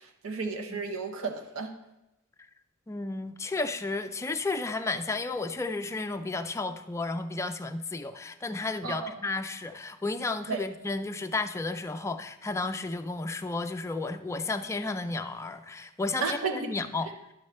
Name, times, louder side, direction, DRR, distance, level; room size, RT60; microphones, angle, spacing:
voice 1, 0.0-1.7 8.8-9.1 10.5-10.7 16.2-16.8, right 4 dB, 80° right, 4 dB, 0.7 m, -33 dB
voice 2, 2.9-17.1, left 3 dB, 15° left, 8 dB, 0.3 m, -33 dB
10.5 x 6.3 x 3.2 m, 0.90 s
head